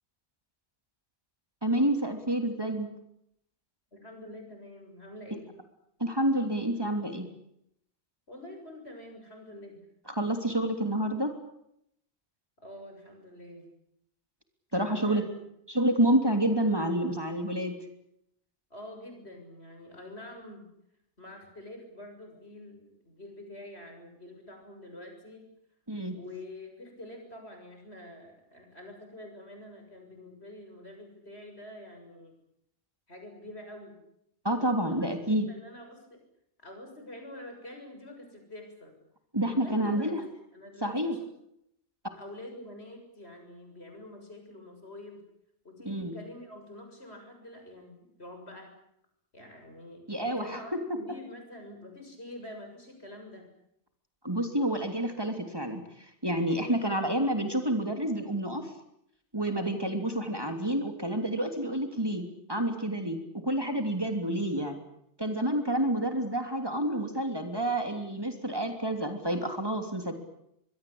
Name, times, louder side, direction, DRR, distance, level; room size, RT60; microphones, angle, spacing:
voice 1, 1.6-2.9 6.0-7.3 10.2-11.3 14.7-15.2 15.7-17.7 25.9-26.2 34.4-35.5 39.3-40.2 40.8-41.2 45.8-46.2 50.1-50.6 54.2-58.7 59.3-64.8 65.2-70.1, right 1 dB, 20° right, 5 dB, 3.2 m, -29 dB
voice 2, 3.9-5.5 8.3-9.8 12.6-13.7 14.7-15.2 18.7-20.6 21.2-25.5 26.1-32.4 33.1-34.0 34.8-35.1 35.5-36.2 36.6-39.0 39.4-40.2 40.5-41.3 42.2-45.2 45.6-48.7 49.3-53.5 56.6-57.0 59.6-59.7, left 1 dB, 65° left, 4 dB, 7.3 m, -46 dB
25.5 x 22.0 x 8.8 m, 0.77 s
omnidirectional pair, 1.2 m